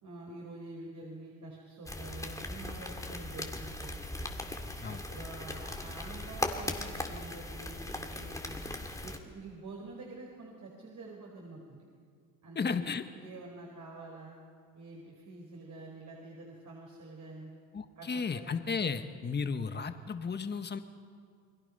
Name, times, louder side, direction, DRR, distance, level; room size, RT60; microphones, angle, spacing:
voice 1, 0.0-4.0 4.8-8.6 9.0-11.8 12.4-12.8 13.1-14.3 14.7-17.5 17.9-18.4, right 2 dB, 40° right, -2 dB, 5.0 m, -47 dB
sound 1, 1.9-9.2, left 1 dB, 10° left, 2.2 m, -39 dB
voice 2, 12.5-13.0 17.7-20.8, left 5 dB, 25° left, 9 dB, 1.5 m, -34 dB
29.5 x 21.0 x 5.6 m, 2.2 s
supercardioid pair, 85°, 42 cm